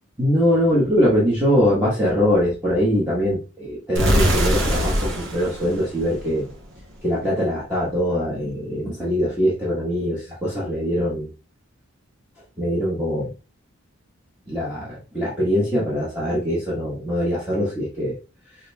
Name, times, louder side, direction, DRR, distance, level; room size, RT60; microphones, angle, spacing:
voice 1, 0.2-6.5 7.0-11.3 12.6-13.3 14.5-18.2, equal, 5° right, -9 dB, 1.0 m, -22 dB
sound 1, 4.0-6.8, equal, 55° right, 1.0 m, -23 dB
5.0 x 2.6 x 2.2 m, 0.31 s
head